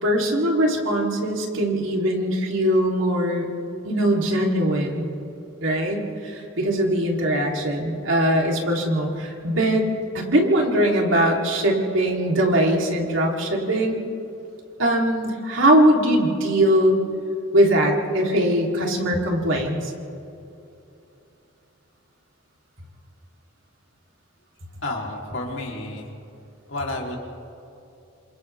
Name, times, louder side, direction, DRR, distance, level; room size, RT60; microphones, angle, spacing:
voice 1, 0.0-3.5 3.8-5.1 5.6-9.9 10.1-14.0 14.8-17.0 17.5-19.9, right 1 dB, 65° right, -1 dB, 3.5 m, -21 dB
voice 2, 24.8-26.1 26.7-27.2, left 2 dB, 65° left, -1 dB, 3.6 m, -30 dB
29.0 x 27.0 x 3.6 m, 2.8 s
head